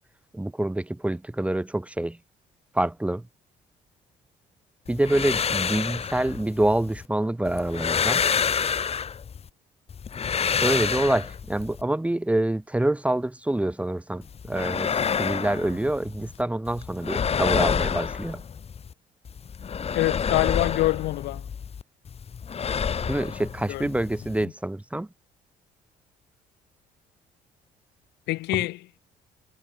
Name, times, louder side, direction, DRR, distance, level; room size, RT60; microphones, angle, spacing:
voice 1, 0.3-2.2 2.7-3.2 4.9-8.2 10.6-14.9 15.2-18.4 23.1-25.1, right 1 dB, 5° right, 1.6 m, -26 dB
sound 1, 4.9-7.1 7.5-9.5 9.9-11.8 14.2-16.4 16.7-18.9 19.3-21.8 22.1-24.5, left 7 dB, 35° left, 2.5 m, -28 dB
voice 2, 19.9-21.5 23.7-23.9 24.4-24.5 28.3-28.9, left 19 dB, 85° left, 3.2 m, -26 dB
cardioid pair, 110°, 17 cm